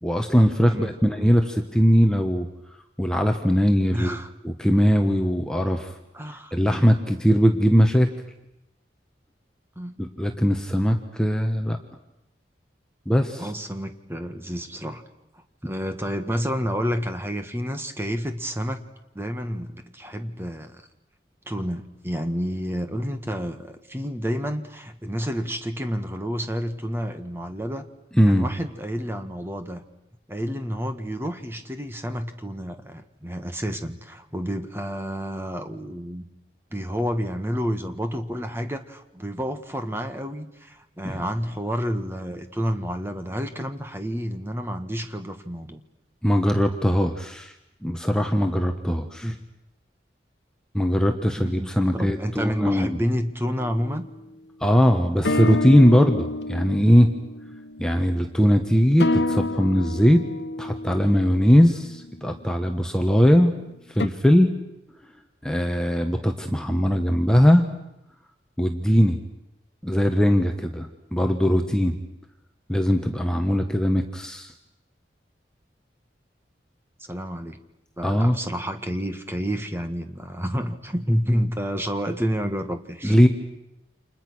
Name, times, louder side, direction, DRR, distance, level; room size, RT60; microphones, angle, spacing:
voice 1, 0.0-2.5 3.0-4.2 4.4-5.9 6.5-8.1 10.0-11.8 13.1-13.4 28.1-28.5 41.0-41.2 46.2-47.5 47.8-49.3 50.7-53.0 54.6-57.1 57.8-60.2 60.6-63.5 63.9-64.5 65.4-67.7 68.6-69.2 69.8-72.0 72.7-74.5 78.0-78.4 83.0-83.3, equal, 5° left, 4 dB, 1.4 m, -20 dB
voice 2, 0.7-1.3 3.9-4.3 6.1-6.6 9.7-10.0 13.4-15.0 15.3-18.8 19.1-20.9 21.4-27.9 28.2-29.8 30.3-36.2 36.7-45.8 49.2-49.4 51.4-54.0 77.0-77.6 78.0-83.2, equal, 15° right, 7 dB, 1.7 m, -29 dB
sound 1, 53.6-54.0 55.2-62.3 64.0-64.1, left 2 dB, 70° left, 1.0 m, -29 dB
30.0 x 27.5 x 6.3 m, 0.88 s
head